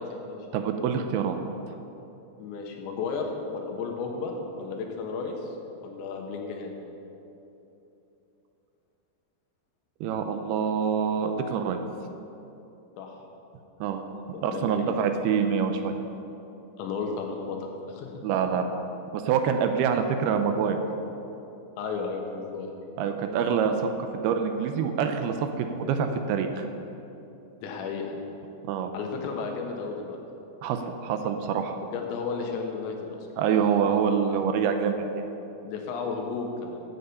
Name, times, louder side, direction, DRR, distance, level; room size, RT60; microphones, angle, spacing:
voice 1, 0.0-0.4 2.4-5.6 5.8-6.7 13.0-13.2 14.3-15.0 16.8-18.2 21.8-22.7 27.6-28.2 28.9-30.2 31.8-33.3 35.6-36.8, left 4 dB, 90° left, 2 dB, 3.6 m, -33 dB
voice 2, 0.5-1.4 10.0-11.8 13.8-14.0 14.4-16.0 18.2-18.7 19.1-20.8 23.0-23.9 24.2-26.6 28.6-28.9 30.6-31.8 33.4-35.2, right 7 dB, 80° right, 6 dB, 2.4 m, -26 dB
15.5 x 8.3 x 5.5 m, 3.0 s
omnidirectional pair, 5.1 m